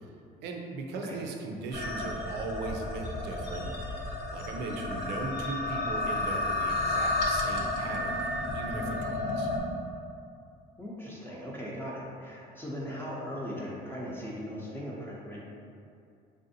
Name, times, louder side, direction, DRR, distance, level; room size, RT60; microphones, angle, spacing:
voice 1, 0.4-4.1 4.3-9.5, right 3 dB, 85° right, 2 dB, 0.4 m, -38 dB
sound 1, 1.7-9.6, left 2 dB, 80° left, 0.5 m, -32 dB
voice 2, 10.8-15.4, equal, 15° left, -5 dB, 0.5 m, -39 dB
3.3 x 2.6 x 2.6 m, 2.5 s
cardioid pair, 110°, 17 cm